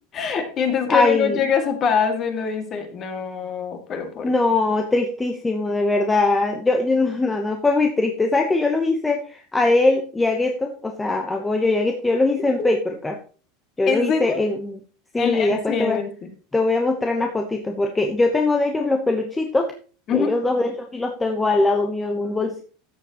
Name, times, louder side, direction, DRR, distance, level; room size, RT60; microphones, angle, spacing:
voice 1, 0.1-4.3 12.6-12.7 13.9-14.4 15.2-16.3 20.1-20.3, left 6 dB, 30° left, 5 dB, 2.1 m, -24 dB
voice 2, 0.9-1.4 4.2-13.2 13.8-14.8 15.1-16.0 16.5-19.7 20.1-22.6, left 2 dB, 10° left, 3 dB, 0.9 m, -21 dB
13.5 x 7.6 x 3.0 m, 0.39 s
supercardioid pair, 150°, 0 cm